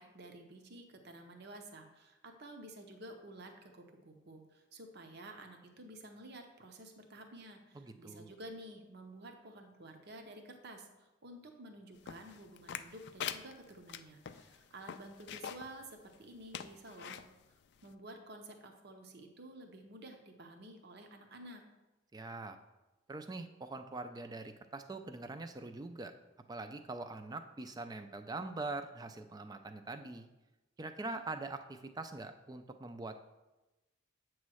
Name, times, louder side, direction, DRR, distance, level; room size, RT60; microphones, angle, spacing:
voice 1, 0.0-17.2 17.8-21.6, right 1 dB, 50° right, 4 dB, 0.8 m, -51 dB
voice 2, 7.7-8.3 22.1-22.6 23.1-26.1 26.5-30.3 30.8-33.2, right 3 dB, 20° right, 8 dB, 0.4 m, -43 dB
sound 1, 12.1-15.7 16.1-16.2 16.5-17.3 17.8-17.9, left 8 dB, 55° left, 0.3 m, -43 dB
8.3 x 3.1 x 6.2 m, 1.1 s
head